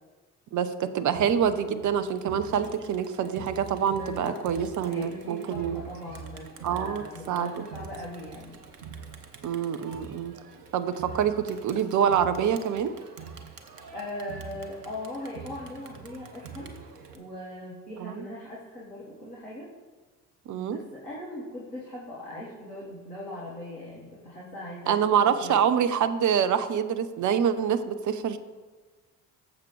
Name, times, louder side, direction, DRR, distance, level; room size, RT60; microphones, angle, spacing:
voice 1, 0.5-5.8 6.6-7.6 9.4-10.3 10.7-12.9 18.0-18.3 20.5-20.8 24.9-28.4, right 8 dB, 40° right, 11 dB, 0.8 m, -26 dB
Crowd, 1.1-17.2, right 6 dB, 80° right, 0.9 m, -45 dB
voice 2, 4.0-4.4 4.8-8.5 11.2-11.3 13.9-16.7 17.1-19.6 20.5-25.0 25.4-25.6, left 1 dB, 85° left, -8 dB, 1.7 m, -40 dB
18.0 x 7.5 x 3.3 m, 1.4 s
figure-of-eight pair, 45°, 46 cm